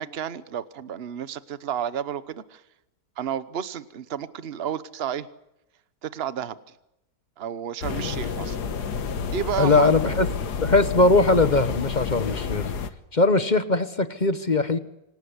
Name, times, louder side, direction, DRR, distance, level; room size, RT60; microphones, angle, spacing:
voice 1, 0.0-2.6 3.2-5.3 6.0-6.6 7.4-8.6 9.3-10.2, right 9 dB, 45° right, 15 dB, 1.1 m, -31 dB
sound 1, 7.8-12.9, left 6 dB, 85° left, 1.8 m, -29 dB
voice 2, 9.6-10.3 10.6-12.7 13.1-14.8, left 3 dB, 30° left, 13 dB, 1.1 m, -20 dB
27.0 x 18.0 x 9.7 m, 0.89 s
omnidirectional pair, 1.7 m